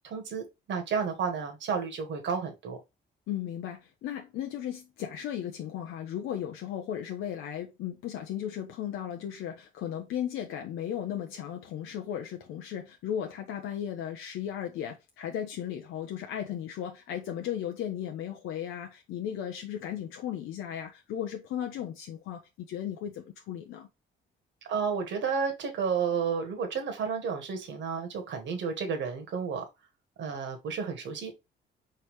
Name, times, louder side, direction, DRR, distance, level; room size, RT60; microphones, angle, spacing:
voice 1, 0.0-2.8 24.6-29.6 30.2-31.3, right 6 dB, 65° right, 1.3 m, -31 dB
voice 2, 3.3-23.9, left 10 dB, 85° left, 0.7 m, -36 dB
4.6 x 3.3 x 3.1 m
cardioid pair, 90°, 20 cm